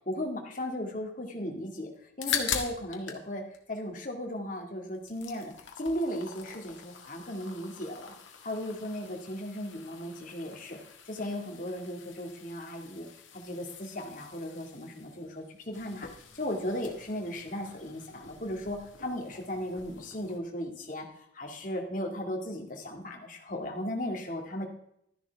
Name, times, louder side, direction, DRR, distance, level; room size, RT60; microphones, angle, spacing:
voice 1, 0.0-1.9 2.2-3.4 3.7-8.1 8.4-10.8 11.0-13.1 13.3-16.1 16.3-21.1 21.3-24.7, left 1 dB, 45° left, 1 dB, 2.0 m, -36 dB
sound 1, 2.0-3.2 3.5-4.6 4.9-20.4, left 7 dB, 85° left, 1.7 m, -42 dB
13.0 x 10.5 x 3.5 m, 0.72 s
head